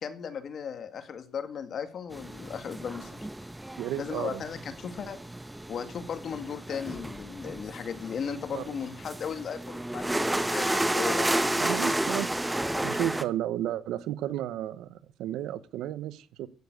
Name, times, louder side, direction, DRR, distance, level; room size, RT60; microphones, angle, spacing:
voice 1, 0.0-3.3 4.0-5.2 5.7-10.7 10.9-11.3, left 7 dB, 60° left, 9 dB, 2.1 m, -36 dB
sound 1, 2.1-13.2, right 1 dB, 10° right, 1.1 m, -32 dB
voice 2, 3.8-4.4 8.5-8.7 11.6-12.5 12.8-16.5, right 12 dB, 90° right, 16 dB, 0.9 m, -33 dB
14.5 x 7.1 x 8.1 m, 0.41 s
cardioid pair, 90°, 0 cm